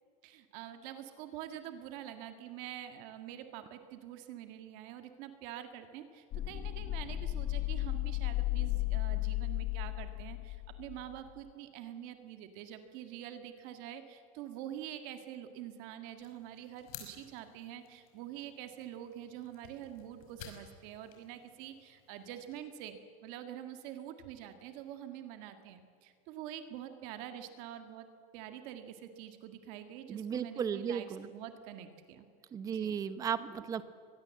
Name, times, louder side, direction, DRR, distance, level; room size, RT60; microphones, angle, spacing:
voice 1, 0.2-28.1 28.3-32.3 32.7-33.0, right 11 dB, 45° right, 7 dB, 1.8 m, -46 dB
sound 1, 6.3-11.2, left 16 dB, 30° left, 0.6 m, -34 dB
sound 2, 16.2-22.6, left 8 dB, 75° left, 5.4 m, -54 dB
voice 2, 30.1-31.3 32.5-33.8, right 7 dB, 20° right, 13 dB, 0.9 m, -35 dB
24.5 x 20.0 x 7.7 m, 2.2 s
supercardioid pair, 170°, 18 cm